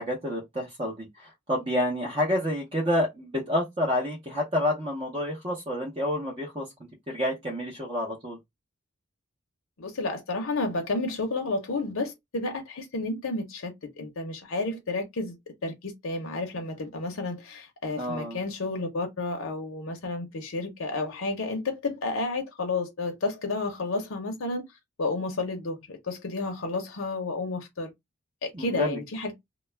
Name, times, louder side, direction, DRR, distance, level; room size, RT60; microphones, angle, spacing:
voice 1, 0.0-6.7 7.1-8.4 18.0-18.4 28.5-29.0, left 1 dB, 25° right, 0.6 m, -29 dB
voice 2, 9.8-15.3 15.6-24.6 25.0-27.9 28.4-29.3, left 3 dB, 80° left, 0.7 m, -31 dB
2.3 x 2.0 x 3.2 m
head